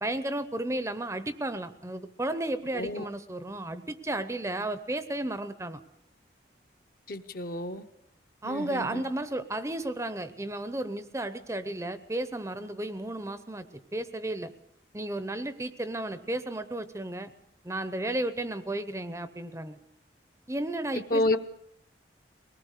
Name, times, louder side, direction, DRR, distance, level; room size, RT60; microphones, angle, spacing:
voice 1, 0.0-5.8 8.4-13.6 13.9-14.5 14.9-17.3 17.6-19.8 20.5-21.4, right 1 dB, 15° right, 12 dB, 0.8 m, -33 dB
voice 2, 2.7-3.1 7.1-7.8 8.4-9.0 21.1-21.4, left 2 dB, 50° left, 8 dB, 1.0 m, -29 dB
23.0 x 19.0 x 6.6 m, 0.73 s
head